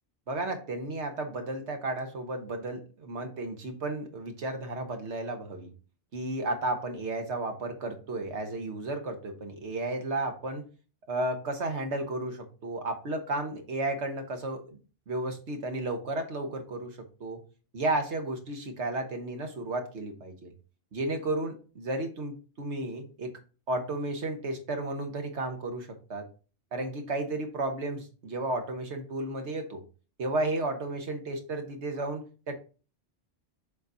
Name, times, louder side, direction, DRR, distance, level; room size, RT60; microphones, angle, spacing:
voice 1, 0.3-5.7 6.1-10.7 11.1-14.8 15.1-17.4 17.7-20.5 20.9-23.4 23.7-26.3 26.7-29.8 30.2-32.5, right 2 dB, 70° right, 5 dB, 1.5 m, -33 dB
7.2 x 4.1 x 4.0 m, 0.35 s
omnidirectional pair, 1.2 m